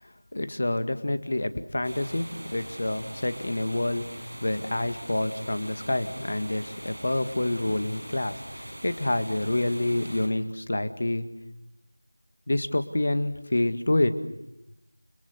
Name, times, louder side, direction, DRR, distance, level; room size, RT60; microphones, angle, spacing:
voice 1, 0.3-4.1 4.4-11.3 12.5-14.4, left 1 dB, 40° left, 11 dB, 1.9 m, -27 dB
sound 1, 1.8-10.3, right 1 dB, 55° right, 7.3 m, -42 dB
30.0 x 22.5 x 7.9 m, 0.85 s
figure-of-eight pair, 170°, 0 cm